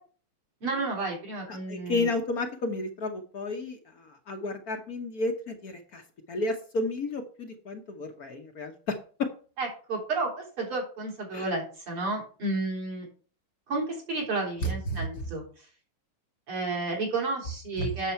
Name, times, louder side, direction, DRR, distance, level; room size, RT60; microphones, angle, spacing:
voice 1, 0.6-2.1 9.6-13.1 13.7-15.4 16.5-18.1, right 3 dB, 80° right, -1 dB, 4.3 m, -31 dB
voice 2, 1.5-6.0 6.3-9.3 11.3-11.5 14.6-15.1 17.8-17.9, left 2 dB, 50° left, 4 dB, 1.4 m, -32 dB
8.5 x 6.8 x 4.5 m, 0.40 s
omnidirectional pair, 2.4 m